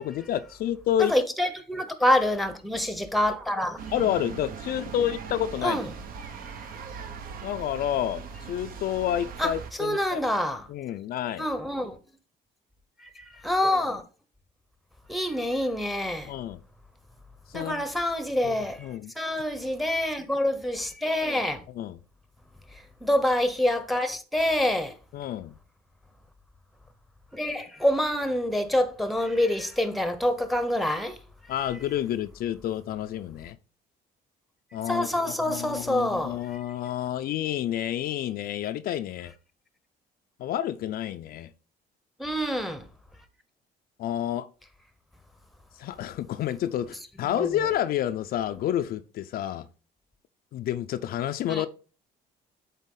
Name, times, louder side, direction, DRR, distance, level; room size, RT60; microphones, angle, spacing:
voice 1, 0.0-1.1 3.9-5.8 7.4-8.2 8.5-10.2 10.7-11.5 16.3-16.6 17.5-17.8 18.4-19.1 21.8-22.0 25.1-25.5 31.5-33.6 34.7-39.3 40.4-41.5 44.0-44.5 45.8-49.7 50.5-51.7, left 11 dB, 65° left, 0.5 m, -29 dB
voice 2, 1.0-3.8 5.6-5.9 6.4-6.7 9.4-9.5 9.8-10.7 11.4-12.0 13.0-14.0 15.1-16.3 17.5-21.6 23.0-24.9 27.3-31.2 34.9-36.6 42.2-42.8 47.3-47.6 51.5-51.7, left 1 dB, ahead, 0.9 m, -26 dB
sound 1, 3.8-9.7, right 6 dB, 60° right, 1.0 m, -40 dB
8.3 x 3.5 x 3.8 m
cardioid pair, 110°, 17 cm